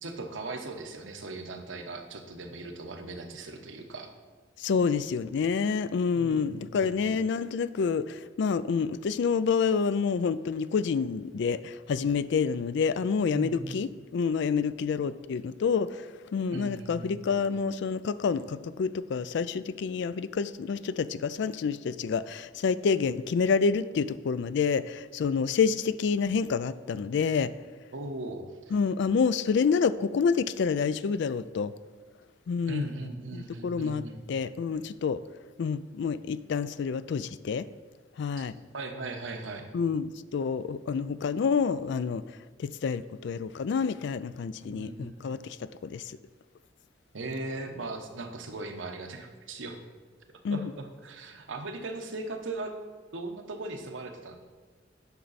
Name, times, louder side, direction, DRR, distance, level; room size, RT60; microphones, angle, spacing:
voice 1, 0.0-4.1 6.1-6.9 13.3-13.8 16.5-17.3 27.9-28.7 32.7-34.2 38.7-39.7 44.6-45.2 47.1-49.8 50.5-52.7 53.1-54.4, right 2 dB, 85° right, 4 dB, 0.9 m, -38 dB
voice 2, 4.6-16.0 16.3-27.5 28.7-31.7 32.5-32.9 33.3-35.2 35.6-37.6 38.2-38.5 39.7-42.2 42.6-46.0 50.4-50.7, left 5 dB, 65° left, 15 dB, 0.3 m, -28 dB
9.3 x 5.8 x 4.1 m, 1.4 s
head